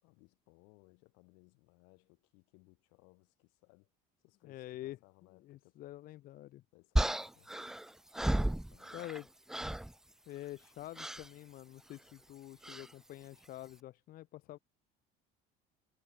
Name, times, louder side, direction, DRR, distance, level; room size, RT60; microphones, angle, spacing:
voice 1, 0.0-3.9 4.2-5.8 6.7-7.5 8.5-9.1 14.4-14.6, left 32 dB, 85° left, 4.8 m, -65 dB
voice 2, 4.4-5.0 5.4-6.6 8.9-9.3 10.3-14.6, left 15 dB, 55° left, 0.9 m, -47 dB
sound 1, 7.0-9.2 9.5-9.9 11.0-11.3 12.6-12.9, right 1 dB, 5° right, 0.3 m, -33 dB
cardioid pair, 125°, 18 cm